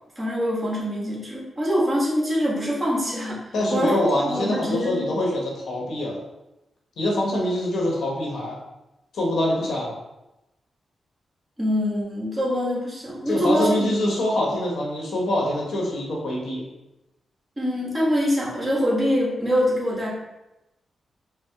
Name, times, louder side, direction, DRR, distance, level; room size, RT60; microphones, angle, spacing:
voice 1, 0.2-3.4 3.7-4.0 4.3-5.0 11.6-13.9 17.6-20.1, equal, 25° right, -6 dB, 1.5 m, -24 dB
voice 2, 3.5-6.2 7.0-8.6 9.1-9.9 13.3-16.6, left 1 dB, 85° left, -3 dB, 1.1 m, -24 dB
4.7 x 2.0 x 3.5 m, 0.94 s
cardioid pair, 90°, 0 cm